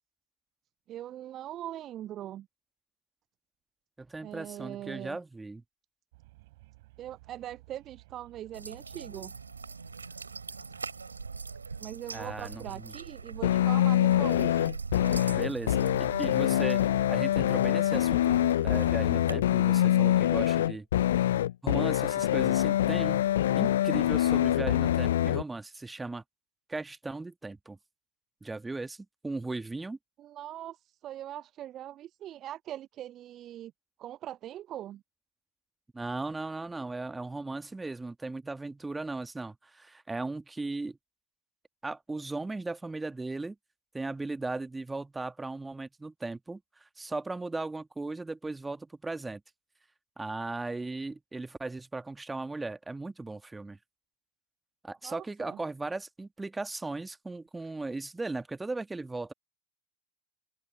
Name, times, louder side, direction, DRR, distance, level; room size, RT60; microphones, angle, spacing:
voice 1, 0.9-2.5 4.2-5.2 7.0-9.3 11.8-14.6 30.2-33.7 34.0-35.0 55.0-55.6, right 12 dB, 35° right, 0.6 m, -41 dB
voice 2, 4.0-5.6 12.1-12.9 15.3-20.9 21.2-21.4 21.6-23.2 23.6-26.2 26.7-27.8 28.4-29.0 29.2-30.0 35.9-41.0 41.8-43.6 43.9-49.4 50.2-53.8 54.8-59.3, right 3 dB, 10° right, 1.8 m, -37 dB
sound 1, 6.1-19.5, right 21 dB, 55° right, 4.1 m, -56 dB
sound 2, 8.5-19.3, right 4 dB, 80° right, 4.6 m, -42 dB
sound 3, 13.4-25.4, left 12 dB, 65° left, 0.4 m, -25 dB
open air
figure-of-eight pair, 80°, 0 cm